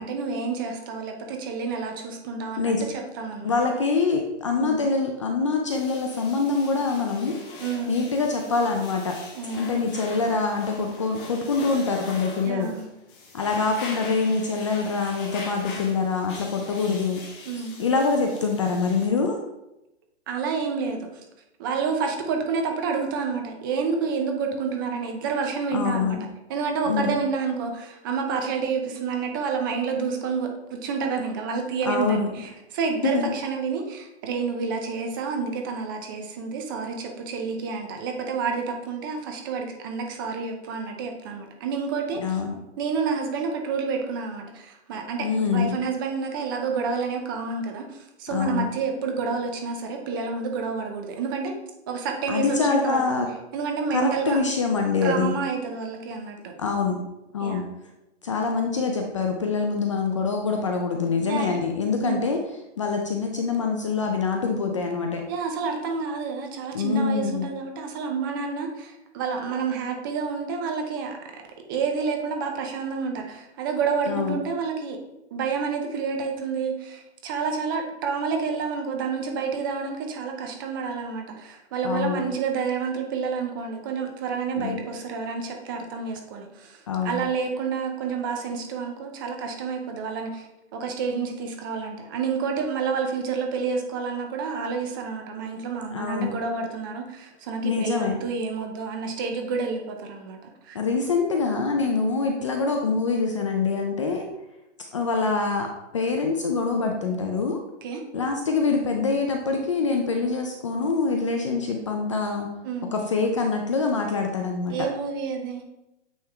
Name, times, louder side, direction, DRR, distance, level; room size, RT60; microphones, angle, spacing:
voice 1, 0.0-3.5 4.5-4.8 7.6-8.0 9.4-9.7 12.4-12.9 17.5-17.8 20.3-21.0 21.6-26.2 26.5-42.4 42.8-45.3 45.5-51.5 51.9-53.0 53.5-54.4 55.0-56.5 57.4-57.6 61.3-61.5 62.0-62.3 65.3-71.2 71.7-75.0 75.3-90.5 90.7-100.4 100.6-100.8 107.8-108.0 112.6-112.9 114.7-115.7, right 5 dB, 20° right, 3 dB, 0.6 m, -29 dB
voice 2, 3.4-7.4 7.9-9.2 9.5-12.7 13.3-17.2 17.8-19.4 25.7-26.3 26.9-27.1 31.8-32.3 33.0-33.3 42.2-42.5 45.2-45.8 48.3-48.7 52.3-53.3 53.9-55.3 56.6-57.0 57.3-57.7 58.2-62.4 62.8-65.2 66.7-67.5 74.1-74.4 81.8-82.2 84.6-84.8 86.9-87.2 95.9-96.3 97.6-98.2 100.7-104.3 104.9-107.6 108.1-112.5 112.9-114.8, left 4 dB, 30° left, 3 dB, 0.4 m, -25 dB
sound 1, 5.7-19.1, left 3 dB, 45° left, 1.8 m, -42 dB
8.8 x 3.4 x 3.4 m, 0.90 s
hypercardioid pair, 155°, 35 cm